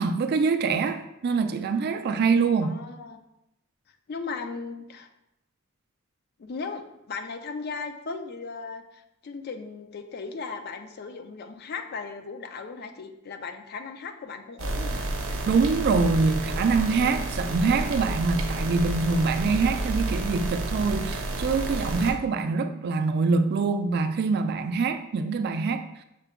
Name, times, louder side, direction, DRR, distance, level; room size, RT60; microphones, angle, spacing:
voice 1, 0.0-2.8 15.5-25.8, right 4 dB, 50° right, 8 dB, 0.3 m, -24 dB
voice 2, 2.6-3.2 4.1-5.1 6.4-15.1, left 4 dB, 50° left, 7 dB, 0.4 m, -37 dB
sound 1, 14.6-22.1, right 2 dB, 85° right, 0.6 m, -30 dB
5.8 x 2.2 x 3.5 m, 0.84 s
head